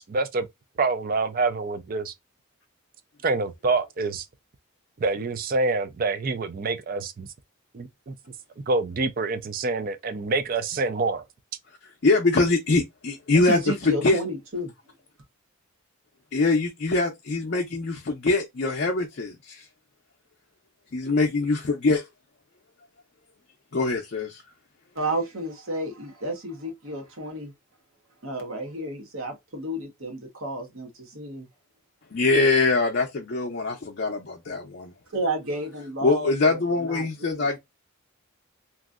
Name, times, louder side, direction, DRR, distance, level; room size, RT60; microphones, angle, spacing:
voice 1, 0.1-0.5 0.8-2.1 3.2-4.3 5.0-7.3 7.7-8.1 8.7-11.2, right 3 dB, 40° right, 0.4 m, -26 dB
voice 2, 12.0-14.2 16.3-19.7 20.9-22.0 23.7-24.4 32.1-34.9 36.0-37.6, left 3 dB, 50° left, 0.5 m, -23 dB
voice 3, 13.3-14.7 24.9-27.5 28.2-31.5 35.1-37.5, right 1 dB, 65° right, 1.1 m, -31 dB
2.9 x 2.6 x 2.4 m
head